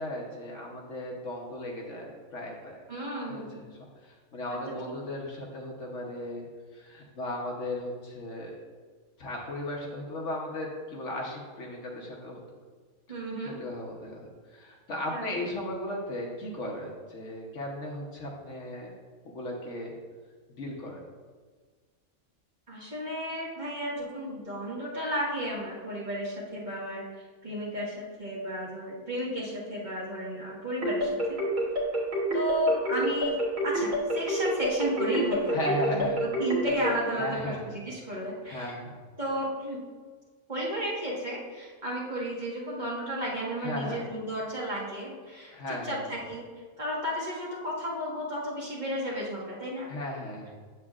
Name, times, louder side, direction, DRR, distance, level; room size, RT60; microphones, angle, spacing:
voice 1, 0.0-2.8 3.2-3.7 4.0-6.4 6.7-8.5 9.2-12.4 13.6-18.9 19.2-19.9 20.6-21.0 35.5-36.2 37.2-37.8 38.4-39.0 43.6-44.0 45.5-46.0 49.9-50.5, left 1 dB, 60° left, -1 dB, 1.2 m, -36 dB
voice 2, 2.9-3.6 4.5-4.6 13.1-13.6 15.1-15.2 22.7-27.0 27.4-31.4 32.3-33.4 33.6-38.7 39.2-39.8 40.5-46.5 46.8-49.9, equal, 30° right, -6 dB, 1.5 m, -33 dB
sound 1, 30.8-36.9, equal, 60° right, 1.9 m, -28 dB
7.4 x 7.2 x 2.4 m, 1.5 s
omnidirectional pair, 1.5 m